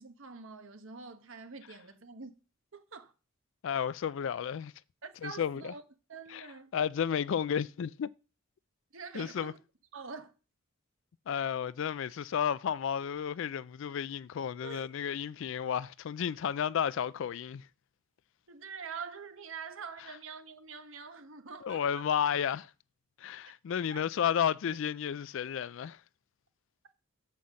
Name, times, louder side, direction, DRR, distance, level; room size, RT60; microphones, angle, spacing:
voice 1, 0.0-2.3 2.7-3.1 5.0-5.8 6.1-6.7 8.9-9.6 9.9-10.3 14.6-14.9 18.5-21.8 23.9-24.0, right 5 dB, 65° right, 1.1 m, -45 dB
voice 2, 3.6-4.7 5.2-5.7 6.3-6.5 6.7-8.1 9.1-9.5 11.3-17.7 21.6-22.7 23.2-26.0, left 8 dB, 60° left, 0.3 m, -32 dB
7.1 x 5.8 x 6.3 m
head